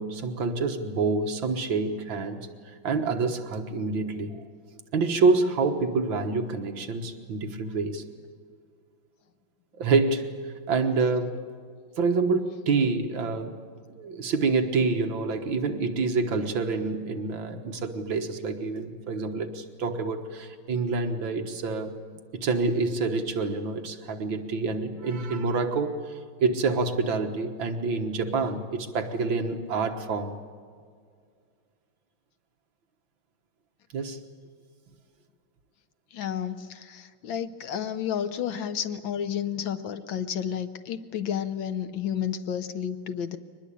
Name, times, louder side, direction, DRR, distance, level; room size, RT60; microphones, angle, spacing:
voice 1, 0.0-2.4 2.8-4.4 4.9-8.0 9.8-10.3 10.7-11.4 12.0-13.6 13.9-21.9 22.3-26.0 26.4-30.4 33.9-34.2, right 4 dB, 65° right, 5 dB, 2.2 m, -27 dB
voice 2, 36.1-43.4, left 9 dB, 65° left, 11 dB, 1.5 m, -31 dB
23.5 x 20.0 x 8.5 m, 2.1 s
omnidirectional pair, 2.4 m